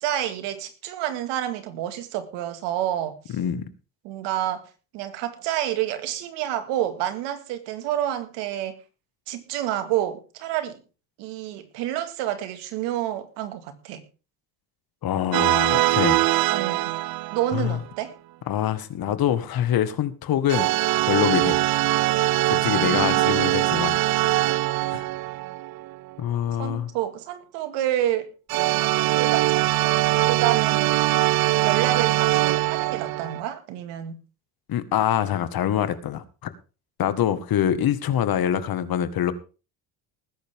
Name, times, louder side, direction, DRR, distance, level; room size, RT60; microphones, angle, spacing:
voice 1, 0.0-3.4 4.0-4.6 4.9-8.8 9.3-10.8 11.2-14.0 16.5-16.9 17.3-18.1 26.6-28.3 28.8-29.9 30.3-30.9 31.6-34.2, right 12 dB, 85° right, 9 dB, 2.2 m, -29 dB
voice 2, 3.3-3.6 15.0-16.2 17.5-17.8 18.5-20.7 21.1-21.6 22.4-24.0 24.9-25.0 26.2-26.9 34.7-36.5 37.0-39.3, left 10 dB, 60° left, 12 dB, 1.9 m, -25 dB
sound 1, 15.3-17.8 20.5-26.1 28.5-33.4, right 17 dB, 55° right, 0.6 m, -22 dB
20.0 x 10.5 x 3.7 m, 0.34 s
supercardioid pair, 80°, 41 cm